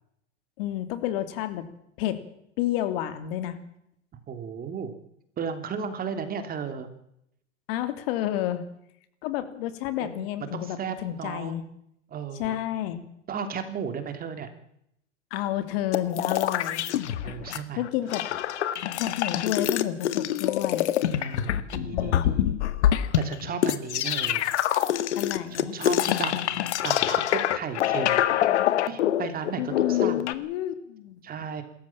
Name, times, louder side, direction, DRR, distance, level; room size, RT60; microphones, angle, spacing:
voice 1, 0.6-1.7 2.0-2.2 2.6-3.6 7.7-8.6 9.2-11.6 12.4-13.0 15.3-16.8 17.8-18.2 19.0-20.9 21.9-22.4 25.1-25.8 29.6-31.2, left 12 dB, 55° left, 10 dB, 2.9 m, -30 dB
voice 2, 4.3-4.9 5.4-6.9 10.0-10.3 10.5-11.6 12.1-12.6 13.3-14.5 17.2-17.8 21.2-22.5 23.2-24.5 25.5-28.3 28.8-30.3 31.2-31.6, right 6 dB, 25° right, 8 dB, 3.1 m, -35 dB
sound 1, 15.9-17.6 17.8-30.3, left 11 dB, 70° left, 1.8 m, -25 dB
27.0 x 14.5 x 7.3 m, 0.75 s
hypercardioid pair, 125°, 35 cm